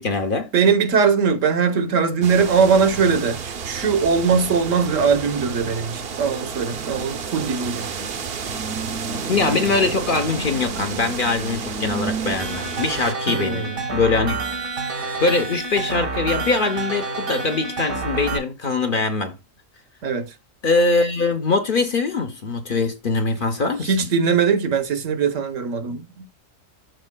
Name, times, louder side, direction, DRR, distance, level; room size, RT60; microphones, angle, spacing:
voice 1, 0.0-0.5 9.3-14.4 15.2-19.4 20.6-23.9, left 3 dB, 45° left, 0.9 m, -22 dB
voice 2, 0.5-8.1 13.3-13.8 20.0-20.3 23.8-26.3, right 6 dB, 70° right, 1.3 m, -20 dB
sound 1, 2.2-13.1, right 5 dB, 50° right, 0.9 m, -30 dB
sound 2, 12.4-18.4, right 3 dB, 85° right, 2.0 m, -28 dB
13.0 x 4.4 x 2.2 m
omnidirectional pair, 1.4 m